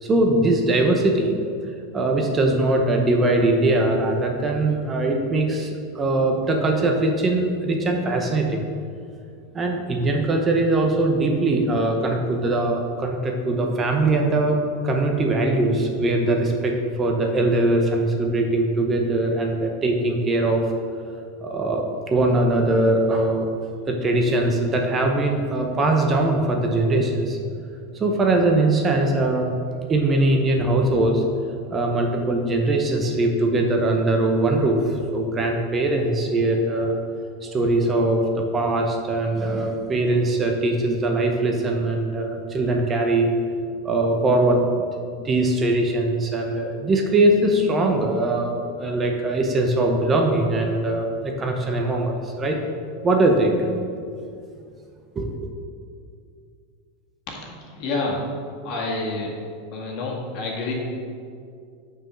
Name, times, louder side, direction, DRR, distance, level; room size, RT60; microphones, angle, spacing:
voice 1, 0.0-1.3 1.9-8.7 9.5-14.6 14.8-20.6 21.4-23.5 23.9-27.4 27.9-29.5 29.9-31.2 31.7-37.0 37.4-43.3 43.8-44.8 45.2-52.6 53.0-53.7 55.1-55.5, right 2 dB, 25° right, 2 dB, 0.8 m, -21 dB
voice 2, 57.7-58.3 58.6-59.3 59.7-60.7, left 3 dB, 55° left, -1 dB, 1.7 m, -28 dB
6.1 x 4.7 x 6.1 m, 2.3 s
hypercardioid pair, 115°, 0 cm